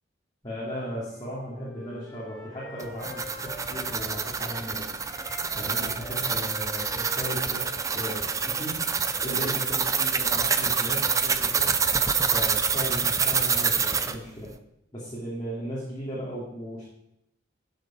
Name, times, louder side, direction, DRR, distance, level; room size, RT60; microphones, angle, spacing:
voice 1, 0.4-4.9 5.5-7.7 7.9-8.8 9.2-11.7 12.3-14.5 14.9-16.8, equal, 25° left, -9 dB, 2.6 m, -36 dB
Wind instrument woodwind instrument, 1.1-4.6 5.0-8.7, left 2 dB, ahead, 3.8 m, -45 dB
sound 1, 2.8-14.2, right 6 dB, 15° right, 0.4 m, -26 dB
12.0 x 6.7 x 4.4 m, 0.79 s
head